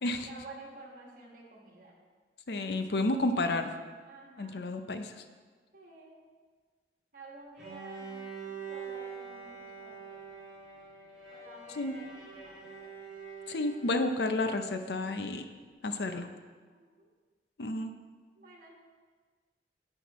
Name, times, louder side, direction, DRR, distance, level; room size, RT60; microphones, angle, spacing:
voice 1, 0.1-1.9 4.0-4.7 5.7-6.2 7.1-10.4 11.3-12.7 16.7-17.1 18.4-18.7, right 3 dB, 50° right, -2 dB, 1.8 m, -51 dB
voice 2, 2.5-3.7 4.4-5.2 11.7-12.0 13.5-15.5 15.8-16.3 17.6-17.9, left 2 dB, 65° left, 8 dB, 0.6 m, -31 dB
Bowed string instrument, 7.6-14.3, right 5 dB, 5° right, 1.9 m, -45 dB
10.0 x 7.8 x 3.1 m, 1.5 s
head